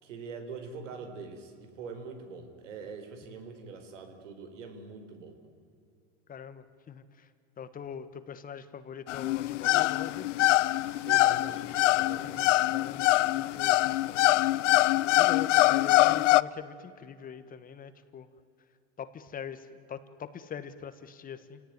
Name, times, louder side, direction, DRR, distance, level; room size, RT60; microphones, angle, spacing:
voice 1, 0.0-5.4 11.1-12.5, right 5 dB, 90° right, 7 dB, 4.4 m, -43 dB
voice 2, 6.3-7.3 7.6-10.3 12.2-14.3 15.2-18.3 19.0-21.6, left 7 dB, 25° left, 12 dB, 1.3 m, -43 dB
sound 1, 9.1-16.4, left 17 dB, 85° left, 0.7 m, -24 dB
28.5 x 18.0 x 9.5 m, 2.5 s
supercardioid pair, 135°, 36 cm